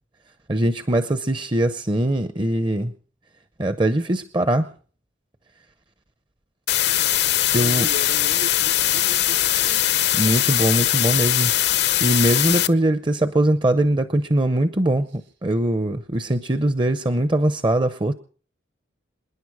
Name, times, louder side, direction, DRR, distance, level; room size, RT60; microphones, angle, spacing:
voice 1, 0.5-2.9 3.6-4.7 7.5-7.9 10.1-11.5 12.0-18.1, right 1 dB, 25° right, 11 dB, 0.6 m, -21 dB
sound 1, 6.7-12.7, left 13 dB, 60° left, 0.6 m, -20 dB
voice 2, 7.5-9.9, right 1 dB, 70° right, 5 dB, 3.7 m, -37 dB
27.0 x 10.0 x 4.7 m, 0.43 s
head